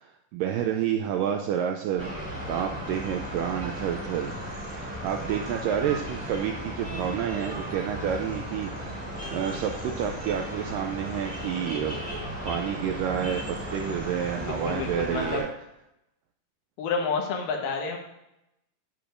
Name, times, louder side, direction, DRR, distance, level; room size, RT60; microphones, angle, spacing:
voice 1, 0.0-9.0 9.3-12.0 12.4-15.5, right 9 dB, 80° right, 4 dB, 2.0 m, -29 dB
sound 1, 2.0-15.4, equal, 10° right, 2.2 m, -35 dB
voice 2, 14.4-15.4 16.8-18.0, left 5 dB, 80° left, 2 dB, 3.1 m, -29 dB
9.9 x 8.7 x 2.6 m, 0.86 s
omnidirectional pair, 4.4 m